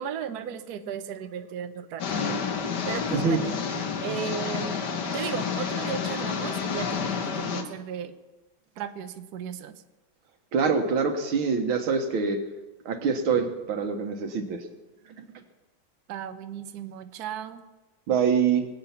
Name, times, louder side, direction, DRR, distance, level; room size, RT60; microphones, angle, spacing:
voice 1, 0.0-2.4 2.9-3.6 4.0-4.8 5.1-8.1 8.8-9.8 16.1-17.6, right 8 dB, 60° right, 9 dB, 1.2 m, -35 dB
sound 1, 2.0-7.6, left 6 dB, 60° left, 1.7 m, -30 dB
voice 2, 3.1-3.4 10.5-12.4 12.9-14.7 15.2-15.3 18.1-18.7, right 5 dB, 90° right, 6 dB, 2.2 m, -25 dB
22.5 x 8.4 x 5.8 m, 1.1 s
omnidirectional pair, 2.2 m